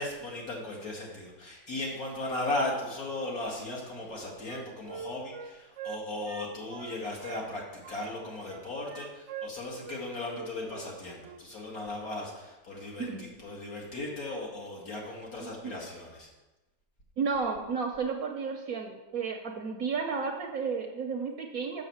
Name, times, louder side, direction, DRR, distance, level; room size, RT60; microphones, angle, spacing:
voice 1, 0.0-16.3, left 2 dB, 50° left, -3 dB, 2.4 m, -37 dB
Wind instrument woodwind instrument, 4.0-7.5 7.8-10.9 11.2-11.4, right 7 dB, 75° right, 0.6 m, -43 dB
voice 2, 17.2-21.8, right 5 dB, 60° right, 3 dB, 1.1 m, -32 dB
7.2 x 6.0 x 7.2 m, 1.1 s
omnidirectional pair, 2.0 m